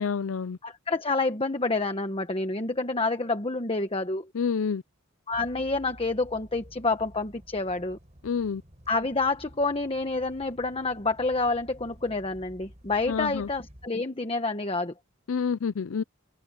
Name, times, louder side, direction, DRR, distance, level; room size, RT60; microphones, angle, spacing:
voice 1, 0.0-0.6 4.3-4.8 8.2-8.6 13.1-13.5 15.3-16.0, left 6 dB, 70° left, 0.5 m, -28 dB
voice 2, 0.6-4.3 5.3-8.0 8.9-14.9, left 3 dB, 25° left, 1.2 m, -28 dB
sound 1, 5.3-13.9, equal, 35° right, 5.4 m, -52 dB
head